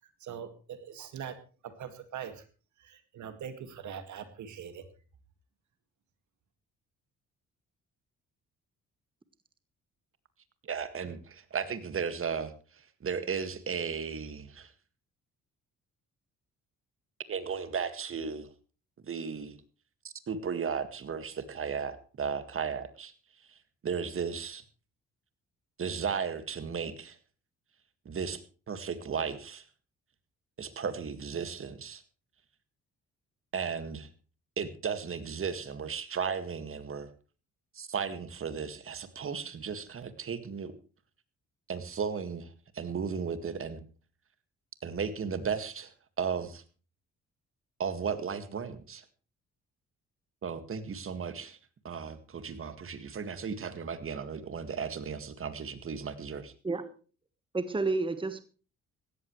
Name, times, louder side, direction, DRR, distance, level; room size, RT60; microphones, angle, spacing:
voice 1, 0.2-1.4 1.6-2.4 2.8-4.8, right 8 dB, 70° right, 9 dB, 2.1 m, -42 dB
voice 2, 10.6-14.7 17.3-18.5 19.0-19.6 20.0-24.6 25.8-27.2 28.1-28.4 28.7-29.6 30.6-32.0 33.5-34.1 34.6-37.1 37.7-40.7 41.7-43.8 44.8-46.6 47.8-49.1 50.4-51.6 51.8-56.5, right 6 dB, 45° right, 11 dB, 1.9 m, -35 dB
voice 3, 57.5-58.4, right 3 dB, 15° right, 11 dB, 1.4 m, -30 dB
16.5 x 14.0 x 3.2 m, 0.36 s
cardioid pair, 90°, 30 cm